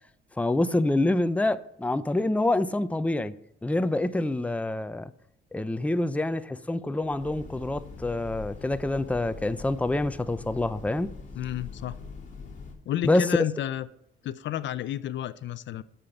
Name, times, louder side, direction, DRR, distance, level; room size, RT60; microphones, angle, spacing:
voice 1, 0.4-3.3 3.6-5.1 5.5-11.1 13.0-13.3, left 2 dB, 5° left, 0.7 m, -26 dB
Train, 7.0-12.7, left 4 dB, 40° left, 3.5 m, -43 dB
voice 2, 11.3-12.0 12.9-13.9 14.2-15.8, left 11 dB, 65° left, 0.7 m, -31 dB
13.0 x 6.9 x 7.2 m
cardioid pair, 90°, 20 cm